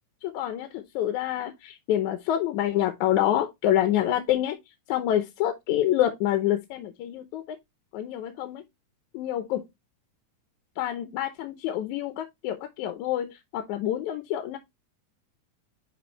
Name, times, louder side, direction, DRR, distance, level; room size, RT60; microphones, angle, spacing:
voice 1, 0.2-4.6 4.9-7.6 7.9-8.6 9.1-9.6 10.8-14.6, left 12 dB, 80° left, 2.2 m, -27 dB
10.5 x 3.7 x 3.0 m
omnidirectional pair, 3.5 m